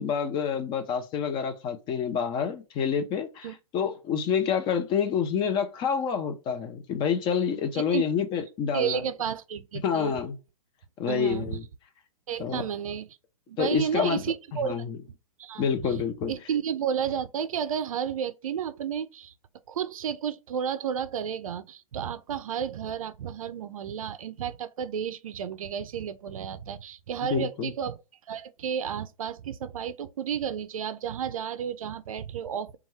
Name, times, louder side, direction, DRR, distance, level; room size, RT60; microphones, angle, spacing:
voice 1, 0.0-9.0 9.8-10.4 11.0-11.6 12.4-12.6 13.6-14.2 14.6-15.0 15.6-16.3 27.3-27.7, left 7 dB, 25° left, 0.6 m, -28 dB
voice 2, 7.7-8.0 8.7-10.2 11.1-11.6 12.3-13.1 13.5-14.8 15.4-19.3 19.7-28.0 28.3-32.8, right 8 dB, 65° right, 0.4 m, -32 dB
2.6 x 2.3 x 3.1 m
figure-of-eight pair, 115°, 19 cm